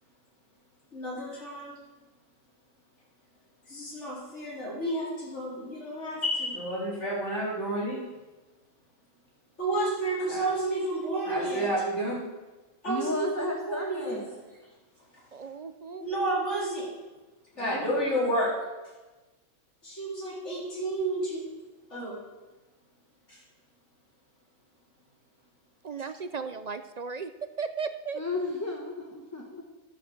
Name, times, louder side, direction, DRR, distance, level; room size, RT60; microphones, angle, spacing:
voice 1, 0.9-1.8 3.7-8.1 9.6-12.3 12.8-14.4 16.0-16.9 17.6-18.6 19.8-21.5 21.9-22.2 23.3-23.4, right 1 dB, 60° left, -7 dB, 4.3 m, -30 dB
voice 2, 12.9-14.2 17.6-18.2 28.1-29.6, left 2 dB, 15° left, 0 dB, 1.2 m, -34 dB
voice 3, 15.3-16.1 25.8-27.3 27.6-28.2, right 5 dB, 55° right, 9 dB, 0.4 m, -35 dB
12.0 x 8.2 x 7.2 m, 1.2 s
omnidirectional pair, 1.3 m